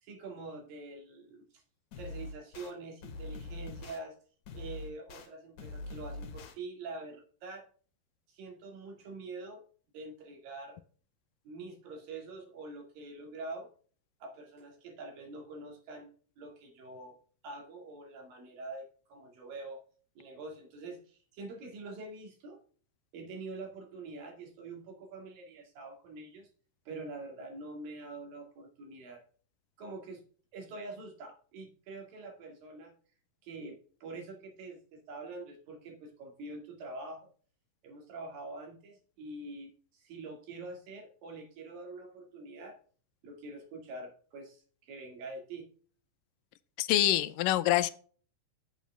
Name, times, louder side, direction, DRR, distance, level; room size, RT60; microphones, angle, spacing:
voice 1, 0.0-1.4 2.0-4.2 4.5-7.7 8.3-9.6 9.9-10.8 11.5-13.7 14.2-17.2 17.4-19.8 20.2-22.6 23.1-26.5 26.9-29.2 29.8-30.2 30.5-32.9 33.4-37.3 37.8-42.8 43.2-45.7, right 2 dB, 75° right, 2 dB, 3.9 m, -45 dB
sound 1, 1.9-2.7 3.0-4.0 4.5-5.3 5.6-6.5, left 2 dB, 60° left, 2.7 m, -43 dB
voice 2, 46.8-47.9, left 14 dB, 80° left, 14 dB, 2.1 m, -26 dB
8.5 x 8.3 x 3.4 m, 0.42 s
omnidirectional pair, 4.1 m